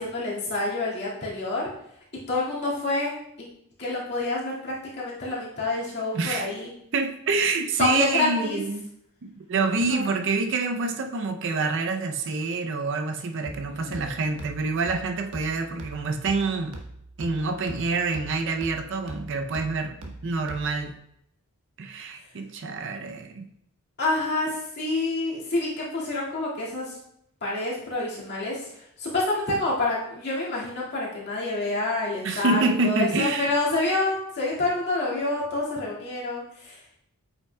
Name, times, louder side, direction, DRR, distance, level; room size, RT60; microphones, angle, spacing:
voice 1, 0.0-1.7 2.3-3.1 3.8-6.7 7.8-8.6 9.9-10.1 13.7-14.2 24.0-27.0 27.4-36.8, left 2 dB, 50° left, -6 dB, 1.9 m, -28 dB
voice 2, 6.1-6.5 6.9-8.9 9.2-16.8 17.2-21.0 21.8-23.5 32.2-33.5, right 3 dB, 55° right, 5 dB, 0.5 m, -27 dB
sound 1, 13.5-21.0, right 2 dB, 85° right, 1.0 m, -42 dB
8.3 x 5.7 x 2.2 m, 0.75 s
head